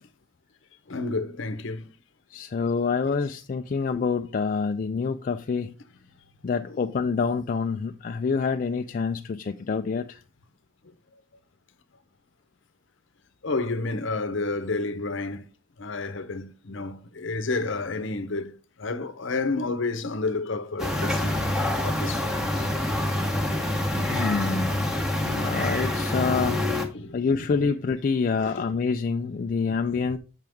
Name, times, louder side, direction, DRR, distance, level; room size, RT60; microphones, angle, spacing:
voice 1, 0.9-1.9 6.7-6.8 13.4-15.4 15.8-21.4 21.8-22.4 24.8-25.1 26.5-27.7 28.3-28.7 29.6-29.8 30.0-30.1, left 3 dB, 60° left, 0.8 m, -31 dB
voice 2, 2.3-5.7 6.4-10.2 24.0-26.8 27.1-30.2, left 5 dB, 40° left, 0.3 m, -27 dB
sound 1, 20.8-26.9, left 1 dB, ahead, 1.0 m, -26 dB
7.6 x 5.7 x 3.5 m
head